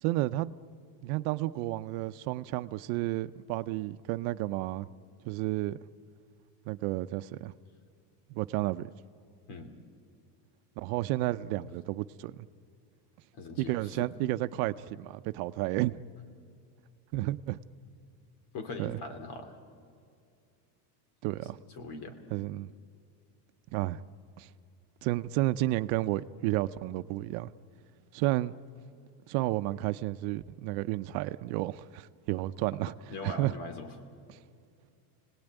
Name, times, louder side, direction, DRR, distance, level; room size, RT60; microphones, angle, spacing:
voice 1, 0.0-0.5 1.0-4.9 5.2-5.8 6.7-7.5 8.3-8.9 10.8-12.5 13.6-16.0 17.1-17.6 18.8-19.0 21.2-21.6 22.3-22.7 23.7-24.0 24.4-24.5 25.0-27.5 28.1-28.5 29.3-32.9 33.2-33.5, right 17 dB, 70° right, 0.8 m, -31 dB
voice 2, 13.3-14.1 18.5-19.5 21.4-22.2 33.1-33.9, left 3 dB, 50° left, 2.8 m, -41 dB
29.5 x 19.0 x 9.0 m
cardioid pair, 170°, 50 cm